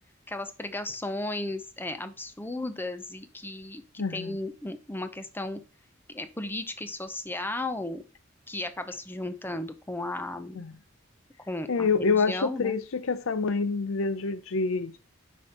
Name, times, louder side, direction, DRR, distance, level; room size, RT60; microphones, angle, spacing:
voice 1, 0.3-5.6 6.1-8.0 8.5-10.6 11.5-12.8, left 2 dB, 10° left, 0.6 m, -35 dB
voice 2, 4.0-4.4 10.5-10.8 11.7-15.0, left 4 dB, 85° left, 0.6 m, -27 dB
6.0 x 5.1 x 4.2 m
head